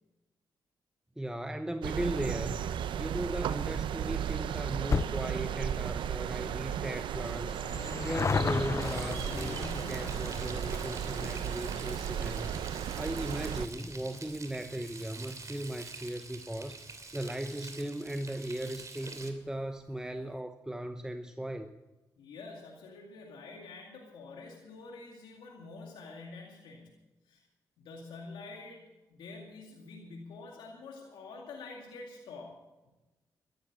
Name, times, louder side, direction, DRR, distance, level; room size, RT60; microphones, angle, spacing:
voice 1, 1.2-2.6 2.9-12.6 13.0-16.8 17.1-21.7, right 1 dB, 10° right, 8 dB, 0.9 m, -37 dB
sound 1, 1.8-13.7, right 9 dB, 80° right, 0.6 m, -35 dB
sound 2, 4.1-16.9 17.2-17.3 18.2-18.3 18.5-18.6 18.8-18.9, left 5 dB, 35° left, 0.4 m, -38 dB
Frying (food), 8.8-19.3, right 3 dB, 40° right, 2.9 m, -47 dB
voice 2, 22.2-27.4 27.8-28.8 29.1-32.6, left 3 dB, 85° left, -1 dB, 2.3 m, -47 dB
13.5 x 12.0 x 7.4 m, 1.1 s
supercardioid pair, 50°, 8 cm